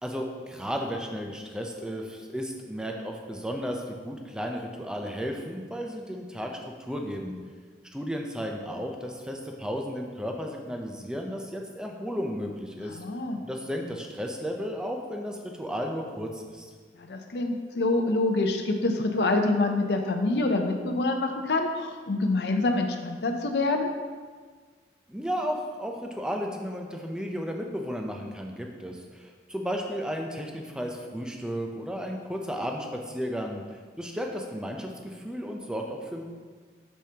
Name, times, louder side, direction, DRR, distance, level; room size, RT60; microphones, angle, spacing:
voice 1, 0.0-6.5 6.8-7.4 7.9-13.0 13.4-16.7 25.1-33.6 34.0-36.2, equal, 5° right, 1 dB, 0.5 m, -34 dB
voice 2, 12.8-13.4 17.0-23.9, left 2 dB, 70° left, 4 dB, 0.6 m, -26 dB
6.7 x 6.4 x 2.9 m, 1.5 s
head